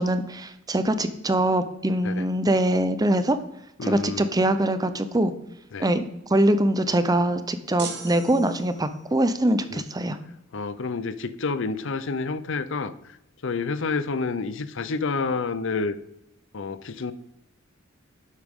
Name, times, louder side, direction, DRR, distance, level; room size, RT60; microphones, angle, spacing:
voice 1, 0.0-3.4 3.8-5.3 5.8-10.2, right 1 dB, 20° right, 11 dB, 0.7 m, -23 dB
voice 2, 3.8-4.3 5.7-5.9 9.7-9.8 10.5-12.9 13.4-16.0 16.5-17.1, left 4 dB, 65° left, 14 dB, 0.6 m, -29 dB
sound 1, 7.8-9.1, right 6 dB, 55° right, 1.4 m, -39 dB
11.0 x 8.3 x 3.7 m, 0.83 s
head